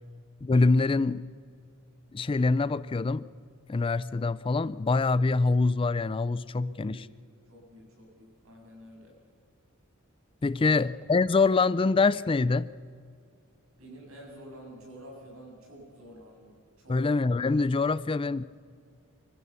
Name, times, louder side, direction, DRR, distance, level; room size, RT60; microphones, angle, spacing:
voice 1, 0.4-1.3 2.1-3.3 3.7-7.1 10.4-12.7 16.9-18.4, left 3 dB, 25° left, 18 dB, 0.4 m, -25 dB
voice 2, 6.6-7.1 7.5-9.2 13.8-17.1, equal, 85° right, -1 dB, 7.5 m, -49 dB
25.0 x 15.0 x 6.9 m, 2.2 s
head